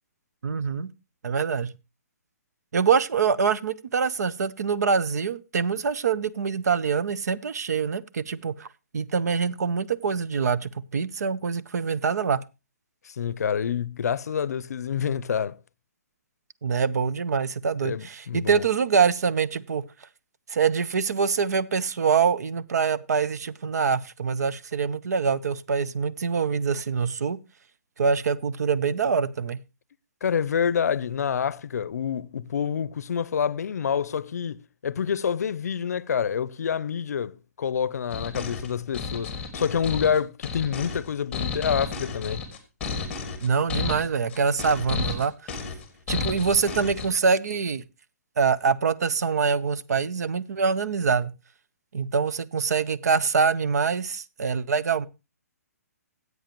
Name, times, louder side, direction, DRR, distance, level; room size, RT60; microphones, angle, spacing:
voice 1, 0.4-0.9 1.2-1.7 2.7-8.7 8.9-12.4 16.6-19.8 20.5-27.4 28.0-29.6 43.4-45.3 46.1-47.8 48.4-51.3 51.9-55.1, right 5 dB, 75° right, 0.7 m, -25 dB
voice 2, 13.0-15.6 17.8-18.6 30.2-42.4, left 7 dB, 70° left, 0.5 m, -27 dB
sound 1, 38.1-47.1, left 5 dB, 10° left, 1.6 m, -32 dB
15.5 x 8.0 x 2.9 m
hypercardioid pair, 170°, 9 cm